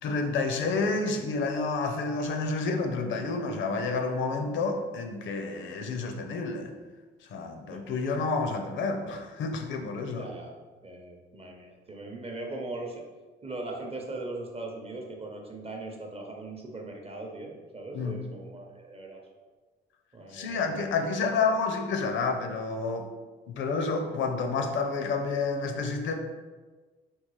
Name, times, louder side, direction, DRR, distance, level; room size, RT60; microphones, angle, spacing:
voice 1, 0.0-6.7 7.3-10.3 17.9-18.2 20.3-23.1 23.5-26.1, left 4 dB, 70° left, 5 dB, 0.5 m, -29 dB
voice 2, 10.2-10.5 10.8-13.0 13.4-19.2 20.1-21.0, right 2 dB, 30° right, 1 dB, 0.6 m, -39 dB
3.7 x 2.3 x 3.0 m, 1.3 s
cardioid pair, 90°, 20 cm